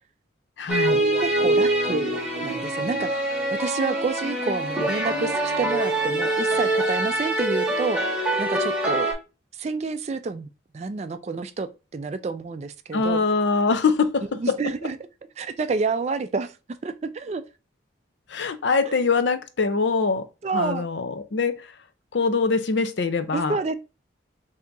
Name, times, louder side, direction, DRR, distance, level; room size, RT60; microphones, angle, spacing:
voice 1, 0.6-1.0 12.9-14.6 18.3-20.3 20.5-21.7 22.1-23.6, left 4 dB, 70° left, 0.5 m, -23 dB
sound 1, 0.7-9.1, right 1 dB, 5° right, 0.9 m, -24 dB
voice 2, 1.2-9.1 9.5-10.5 10.7-13.2 14.3-15.0 15.4-17.4 18.9-19.0 20.4-20.9 23.3-23.7, right 4 dB, 35° right, 0.3 m, -29 dB
3.4 x 2.8 x 3.8 m
head